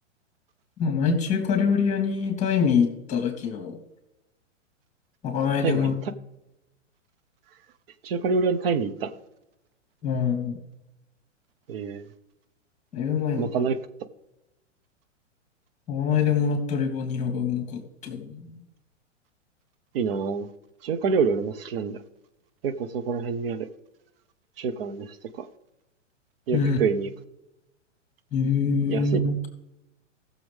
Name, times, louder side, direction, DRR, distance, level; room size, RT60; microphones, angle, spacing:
voice 1, 0.8-3.8 5.2-5.9 10.0-10.6 12.9-13.6 15.9-18.6 26.5-26.8 28.3-29.4, left 6 dB, 20° left, 2.8 m, -25 dB
voice 2, 5.6-6.1 8.0-9.1 11.7-12.1 13.3-13.8 19.9-20.5 20.8-22.0 22.6-23.7 24.6-25.5 26.5-27.1 28.9-29.2, right 5 dB, 50° right, 1.1 m, -26 dB
18.0 x 7.0 x 3.6 m
hypercardioid pair, 115°, 37 cm